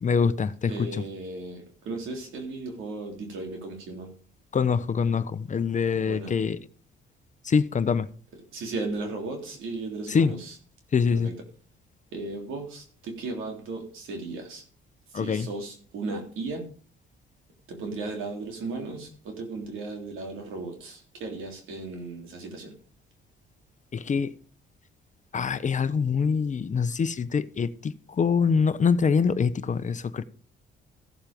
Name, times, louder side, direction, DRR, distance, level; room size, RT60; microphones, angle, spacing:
voice 1, 0.0-1.0 4.5-6.6 7.4-8.1 10.1-10.3 10.9-11.3 15.1-15.5 23.9-24.3 25.3-30.2, left 6 dB, 40° left, 0.9 m, -24 dB
voice 2, 0.7-4.1 6.0-6.3 8.5-10.6 11.1-11.4 12.1-14.6 15.1-16.7 17.7-22.7, right 3 dB, 85° right, 3.5 m, -36 dB
15.0 x 7.3 x 5.2 m
cardioid pair, 90°, 20 cm